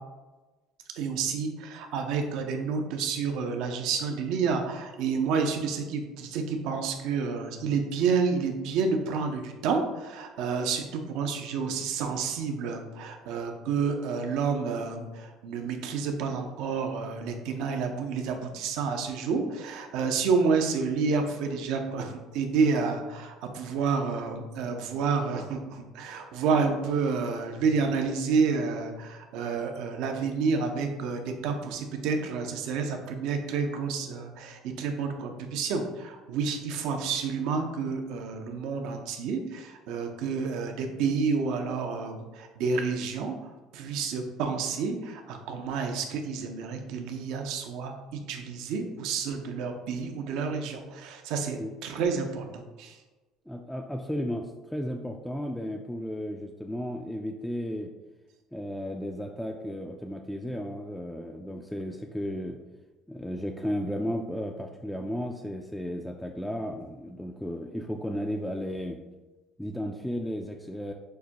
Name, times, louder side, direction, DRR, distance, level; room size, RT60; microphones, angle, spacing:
voice 1, 0.9-43.4 43.7-53.0, right 5 dB, 75° right, 5 dB, 0.6 m, -29 dB
voice 2, 53.5-57.9 58.5-62.6 63.1-69.0 69.6-70.9, equal, 5° left, 1 dB, 0.3 m, -34 dB
6.5 x 2.2 x 2.8 m, 1.2 s
supercardioid pair, 100°, 0 cm